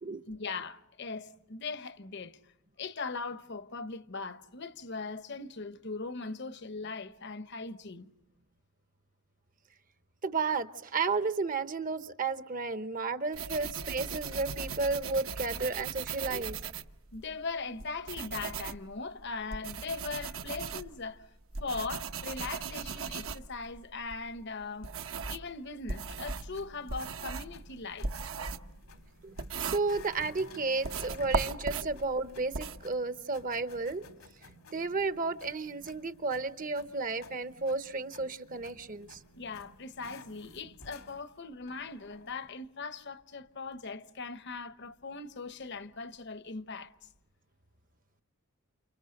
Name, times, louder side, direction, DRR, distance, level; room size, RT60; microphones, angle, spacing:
voice 1, 0.3-2.4 2.8-8.1 17.1-21.3 21.6-24.9 25.3-28.1 39.3-46.9, left 4 dB, 50° left, 1.0 m, -40 dB
voice 2, 10.2-16.6 29.2-34.0 34.7-39.2, right 3 dB, 40° right, 0.9 m, -33 dB
sound 1, 13.3-17.3 17.8-25.5 25.9-30.4 30.8-32.8, right 5 dB, 70° right, 1.1 m, -38 dB
sound 2, 25.9-42.5, left 2 dB, 90° left, 2.7 m, -54 dB
29.5 x 28.5 x 6.5 m
head